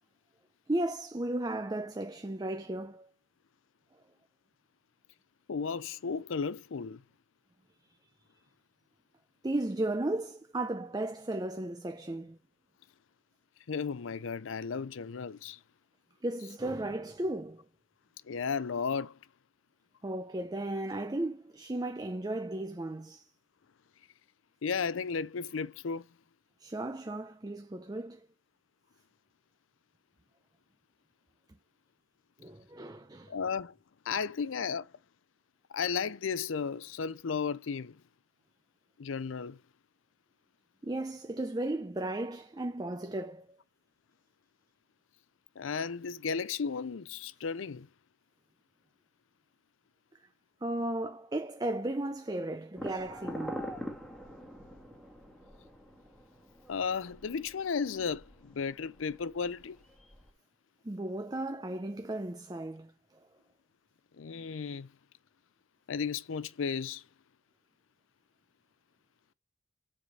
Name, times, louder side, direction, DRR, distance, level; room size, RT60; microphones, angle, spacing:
voice 1, 0.7-3.1 9.4-12.4 16.2-17.6 20.0-23.3 26.6-28.3 32.4-33.4 40.8-43.5 50.6-53.7 60.8-62.9, right 1 dB, 20° right, 0.6 m, -35 dB
voice 2, 5.5-7.0 13.7-15.6 18.3-19.2 24.6-26.0 33.3-33.7 34.1-34.9 35.7-38.0 39.0-39.6 45.6-47.9 56.7-59.8 64.2-64.9 65.9-67.0, left 5 dB, 85° left, 0.5 m, -34 dB
sound 1, 52.7-60.3, equal, 5° left, 1.8 m, -44 dB
7.5 x 4.9 x 6.4 m
head